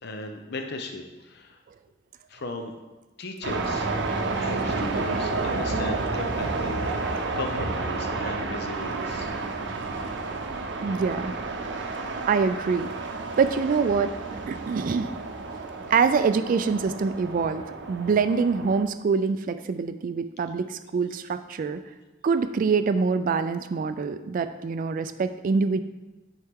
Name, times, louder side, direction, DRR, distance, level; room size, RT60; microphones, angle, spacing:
voice 1, 0.0-1.6 2.3-2.7 3.2-3.9 4.4-9.3, left 2 dB, 60° left, 5 dB, 0.7 m, -36 dB
sound 1, 3.4-18.8, right 3 dB, 70° right, 0.7 m, -31 dB
voice 2, 10.8-11.4 12.3-12.9 13.4-15.1 15.5-15.6 15.9-17.6 17.9-21.8 22.2-25.8, right 5 dB, 45° right, 10 dB, 0.3 m, -25 dB
9.5 x 4.5 x 3.6 m, 1.1 s
head